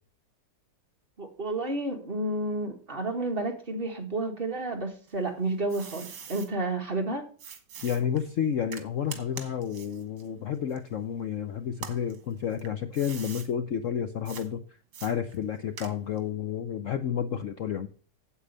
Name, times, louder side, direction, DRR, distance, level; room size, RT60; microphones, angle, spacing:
voice 1, 1.2-7.3, right 2 dB, 35° right, 3 dB, 1.7 m, -31 dB
sound 1, 5.1-6.5 7.4-11.3 11.7-13.5 14.3-14.5 14.9-16.3, right 7 dB, 70° right, 2.0 m, -44 dB
voice 2, 7.8-14.6 15.0-17.9, left 8 dB, 60° left, 9 dB, 0.9 m, -30 dB
8.5 x 8.1 x 5.4 m, 0.40 s
omnidirectional pair, 1.9 m